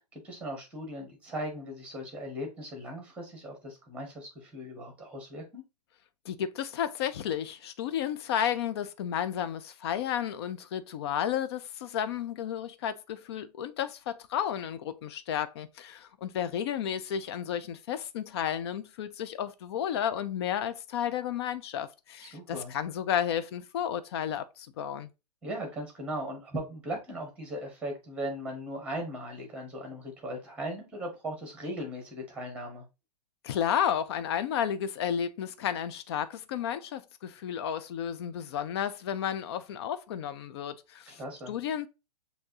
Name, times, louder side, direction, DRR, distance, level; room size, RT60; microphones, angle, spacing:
voice 1, 0.0-5.6 22.2-22.7 25.4-32.8 41.1-41.6, equal, 5° right, 1.6 m, -38 dB
voice 2, 6.3-25.1 33.4-41.2 41.5-41.9, left 9 dB, 40° left, 0.5 m, -32 dB
6.4 x 2.7 x 2.7 m
figure-of-eight pair, 110°, 21 cm